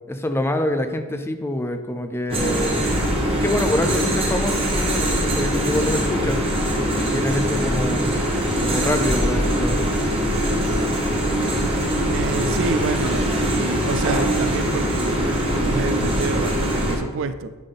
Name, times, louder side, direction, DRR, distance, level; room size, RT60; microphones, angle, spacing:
voice 1, 0.1-2.9 3.4-6.4 6.7-8.2 8.6-9.8, left 1 dB, 10° left, 7 dB, 0.4 m, -26 dB
sound 1, 2.3-17.0, equal, 25° right, 1.1 m, -22 dB
voice 2, 12.1-17.5, right 4 dB, 60° right, 11 dB, 0.4 m, -28 dB
10.5 x 3.6 x 3.9 m, 1.3 s
head